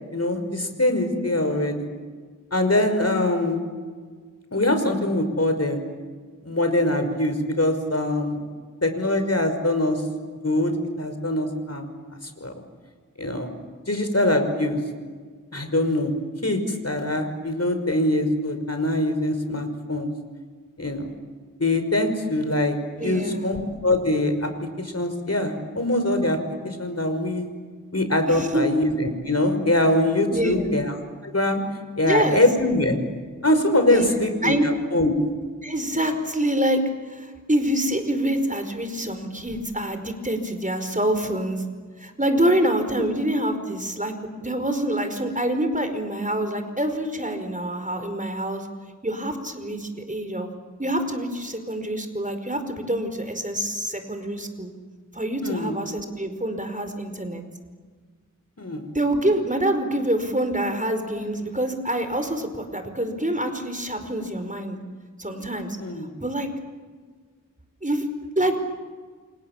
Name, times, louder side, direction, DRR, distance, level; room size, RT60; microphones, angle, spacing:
voice 1, 0.1-1.8 2.5-3.6 4.5-5.8 6.4-8.4 8.8-10.0 10.4-10.7 11.0-11.9 12.4-12.5 13.2-13.5 13.9-14.8 15.5-16.1 16.4-20.1 20.8-21.1 21.6-24.5 24.8-27.5 27.9-31.0 31.2-31.6 32.0-33.0 33.4-35.1 43.0-43.2 55.4-55.8 58.6-58.9 65.8-66.1, left 1 dB, 50° left, 7 dB, 5.5 m, -23 dB
voice 2, 23.0-23.5 28.3-28.6 30.3-30.7 32.0-32.4 33.9-34.1 34.4-34.7 35.6-36.8 37.1-41.6 42.0-44.1 44.4-48.7 49.0-50.5 50.8-54.7 55.1-57.4 58.9-64.8 65.2-65.8 66.2-66.5 67.8-68.1 68.4-68.6, right 1 dB, 25° right, 7 dB, 5.0 m, -26 dB
29.5 x 27.0 x 7.4 m, 1.5 s
wide cardioid pair, 45°, 32 cm